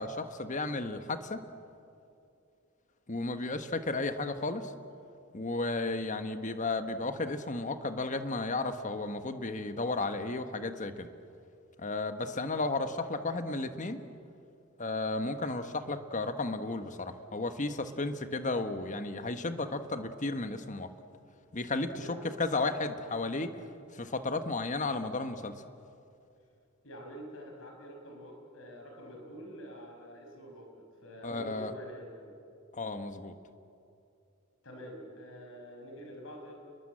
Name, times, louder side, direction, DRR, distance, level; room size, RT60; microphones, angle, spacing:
voice 1, 0.0-1.4 3.1-4.7 5.3-11.1 11.8-14.0 14.8-20.9 21.5-25.6 31.2-31.7 32.7-33.3, left 3 dB, 35° left, 9 dB, 1.3 m, -33 dB
voice 2, 21.9-22.3 26.8-30.7 31.0-32.3 34.6-36.5, equal, 65° left, 2 dB, 5.7 m, -46 dB
29.0 x 21.5 x 7.7 m, 2.6 s
head